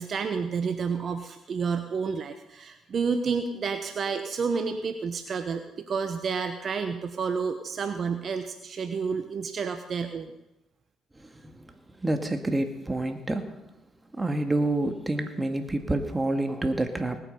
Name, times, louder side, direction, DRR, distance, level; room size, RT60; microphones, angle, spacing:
voice 1, 0.0-10.3, right 5 dB, 50° right, 7 dB, 1.0 m, -30 dB
voice 2, 11.2-11.6 12.0-13.6 14.1-17.2, right 2 dB, 20° right, 5 dB, 2.1 m, -28 dB
19.0 x 8.9 x 5.5 m, 0.94 s
supercardioid pair, 60°, 0 cm